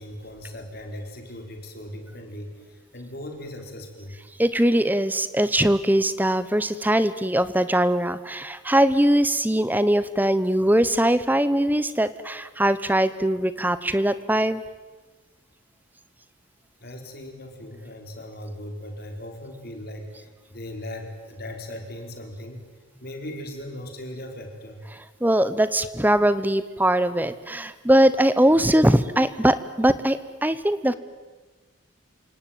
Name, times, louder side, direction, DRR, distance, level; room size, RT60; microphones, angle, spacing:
voice 1, 0.0-4.2 16.8-22.6 23.0-24.8, left 1 dB, 50° left, 4 dB, 4.4 m, -38 dB
voice 2, 4.4-14.6 24.9-31.0, right 1 dB, 10° right, 14 dB, 1.0 m, -21 dB
28.5 x 18.0 x 9.4 m, 1.3 s
head